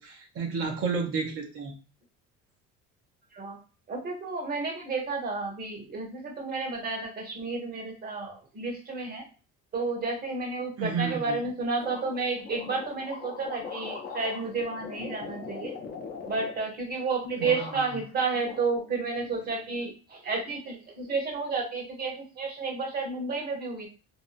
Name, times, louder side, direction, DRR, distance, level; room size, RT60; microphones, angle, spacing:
voice 1, 0.0-1.7 10.8-11.3 17.5-17.6, right 5 dB, 50° right, 0 dB, 0.7 m, -31 dB
voice 2, 3.9-9.2 9.7-15.7 16.3-23.9, right 4 dB, 30° right, 0 dB, 1.0 m, -31 dB
sound 1, 11.8-17.1 17.4-18.1 18.4-19.3, left 5 dB, 30° left, 0.5 m, -41 dB
2.6 x 2.3 x 2.5 m, 0.34 s
cardioid pair, 150°, 30 cm